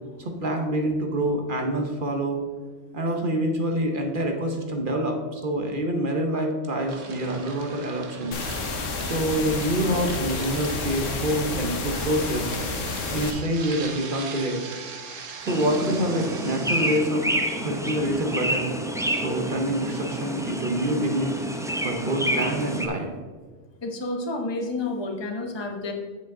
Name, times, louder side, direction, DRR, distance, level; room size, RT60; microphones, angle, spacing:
voice 1, 0.2-2.4 2.9-8.4 9.0-12.5 13.1-14.6 15.4-17.2 17.6-18.7 19.2-21.4 21.8-23.1, right 1 dB, 45° right, 3 dB, 1.0 m, -26 dB
sound 1, 6.9-17.0, right 5 dB, 90° right, 1.3 m, -41 dB
sound 2, 8.3-13.3, left 3 dB, 80° left, 1.3 m, -30 dB
sound 3, 15.5-22.9, right 1 dB, 5° right, 0.3 m, -29 dB
voice 2, 17.5-17.8 23.8-25.9, left 2 dB, 25° left, 2 dB, 0.9 m, -30 dB
8.2 x 7.3 x 3.8 m, 1.4 s
omnidirectional pair, 1.3 m